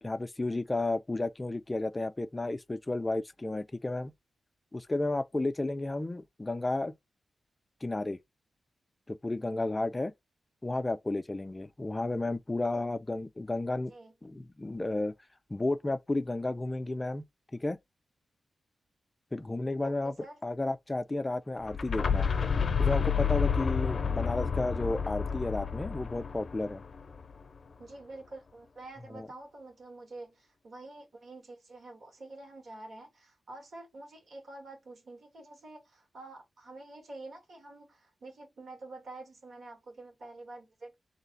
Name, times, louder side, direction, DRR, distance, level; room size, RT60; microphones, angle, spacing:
voice 1, 0.0-4.1 4.7-6.9 7.8-8.2 9.1-10.1 10.6-13.9 14.2-15.1 15.5-17.3 17.5-17.8 19.3-20.1 20.4-22.3 22.8-26.8 29.1-29.3, left 2 dB, 20° left, 0.4 m, -32 dB
voice 2, 19.8-20.4 27.8-40.9, right 2 dB, 60° right, 2.1 m, -48 dB
sound 1, 21.6-27.4, left 6 dB, 50° left, 0.6 m, -30 dB
3.2 x 2.8 x 4.0 m
wide cardioid pair, 120°, 0 cm